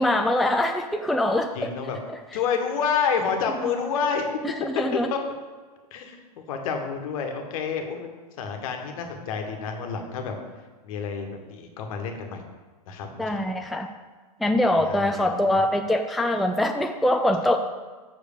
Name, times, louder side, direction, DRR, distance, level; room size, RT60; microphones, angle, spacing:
voice 1, 0.0-1.7 4.4-5.1 13.2-13.9 14.4-17.6, left 1 dB, ahead, 4 dB, 0.4 m, -23 dB
voice 2, 1.5-2.0 2.3-4.2 4.9-5.2 5.9-6.2 6.5-10.3 10.8-12.4 12.9-13.7 14.8-15.4, left 6 dB, 60° left, 4 dB, 1.5 m, -29 dB
6.6 x 5.0 x 6.7 m, 1.4 s
hypercardioid pair, 100°, 20 cm